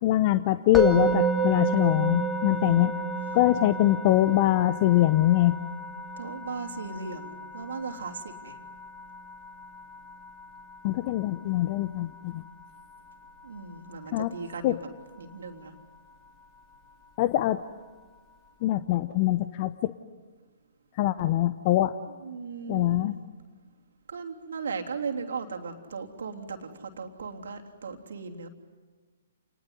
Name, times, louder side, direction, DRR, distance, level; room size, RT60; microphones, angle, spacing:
voice 1, 0.0-2.9 3.3-5.5 10.8-12.4 14.1-14.3 14.6-14.7 17.2-17.6 18.6-19.9 20.9-21.9 22.7-23.2, left 15 dB, 40° left, 13 dB, 0.8 m, -23 dB
Musical instrument, 0.7-11.9, right 4 dB, 10° left, 2.9 m, -32 dB
voice 2, 6.2-8.6 13.4-14.8 15.2-15.7 22.2-23.1 24.1-28.5, right 5 dB, 65° right, 3 dB, 3.2 m, -37 dB
29.5 x 20.5 x 9.8 m, 1.4 s
figure-of-eight pair, 125°, 0 cm